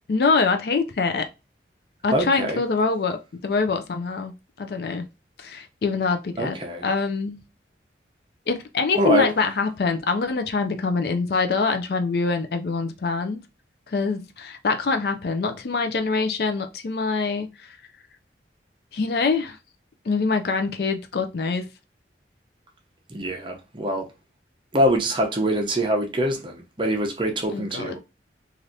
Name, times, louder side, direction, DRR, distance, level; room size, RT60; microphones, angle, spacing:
voice 1, 0.1-1.3 2.0-4.3 4.6-5.0 5.4-6.6 6.8-7.4 8.5-13.4 13.9-17.5 18.9-19.6 20.1-21.7 27.5-28.0, left 4 dB, 60° left, 0.4 m, -24 dB
voice 2, 2.1-2.6 6.4-6.8 9.0-9.3 23.1-24.1 24.7-28.0, right 1 dB, 25° right, 0.6 m, -24 dB
3.2 x 2.5 x 2.6 m
head